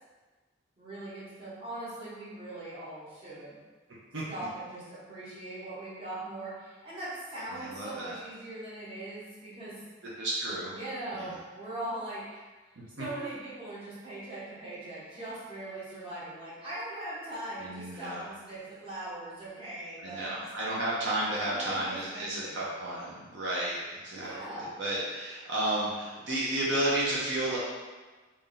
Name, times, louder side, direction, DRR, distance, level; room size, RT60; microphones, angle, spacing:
voice 1, 0.8-3.6 4.3-9.8 10.7-12.4 13.0-20.3 21.4-22.6 24.1-24.8, right 1 dB, 25° right, -10 dB, 1.1 m, -40 dB
voice 2, 7.5-8.1 10.2-10.7 11.1-11.3 12.8-13.0 17.6-18.2 20.0-27.6, right 1 dB, 65° right, -6 dB, 0.7 m, -32 dB
3.1 x 2.6 x 3.8 m, 1.3 s
head